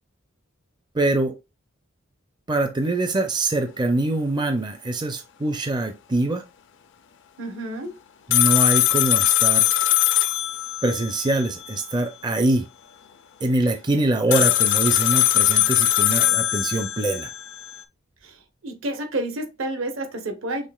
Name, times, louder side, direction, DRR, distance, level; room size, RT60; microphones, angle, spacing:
voice 1, 0.9-1.3 2.5-6.4 8.3-9.7 10.8-12.7 13.4-17.3, right 2 dB, 20° right, 0.5 m, -24 dB
voice 2, 7.4-8.0 14.3-14.5 18.2-20.7, right 1 dB, 70° right, 1.1 m, -30 dB
sound 1, 8.3-11.7 14.3-17.7, left 14 dB, 60° left, 0.4 m, -20 dB
6.4 x 3.5 x 2.3 m
head